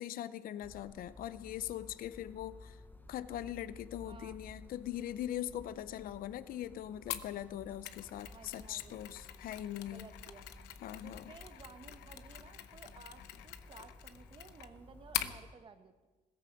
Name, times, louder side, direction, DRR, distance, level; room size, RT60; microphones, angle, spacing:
voice 1, 0.0-2.8 3.1-10.1 10.8-11.3, left 12 dB, 60° left, 15 dB, 0.6 m, -41 dB
sound 1, 0.6-15.6, left 2 dB, 10° left, 0.9 m, -55 dB
voice 2, 4.0-4.4 8.3-9.0 9.9-10.4 11.0-16.1, right 4 dB, 30° right, 8 dB, 1.1 m, -55 dB
Mechanisms, 7.1-15.4, left 13 dB, 85° left, 0.9 m, -44 dB
16.5 x 14.5 x 5.2 m, 1.3 s
cardioid pair, 110°, 17 cm